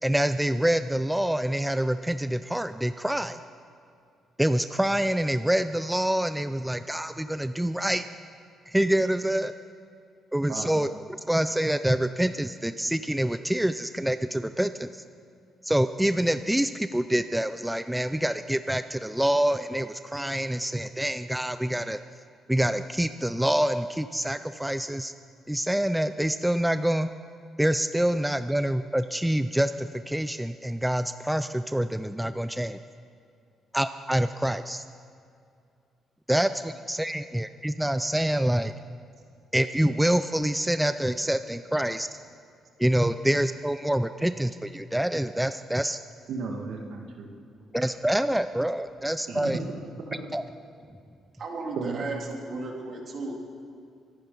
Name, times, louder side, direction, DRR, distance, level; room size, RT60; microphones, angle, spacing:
voice 1, 0.0-3.4 4.4-8.0 8.7-9.5 10.3-15.0 15.6-22.0 22.5-25.1 25.5-27.1 27.6-32.8 33.7-34.8 36.3-38.7 39.5-42.1 42.8-46.0 47.7-49.6 50.3-50.4, right 1 dB, 5° right, 11 dB, 0.5 m, -26 dB
voice 2, 46.3-47.3 49.3-50.3 51.8-52.0, right 4 dB, 75° right, 2 dB, 1.8 m, -34 dB
voice 3, 51.4-53.3, right 3 dB, 55° right, 1 dB, 2.9 m, -35 dB
24.0 x 10.5 x 5.4 m, 2.4 s
cardioid pair, 90°, 0 cm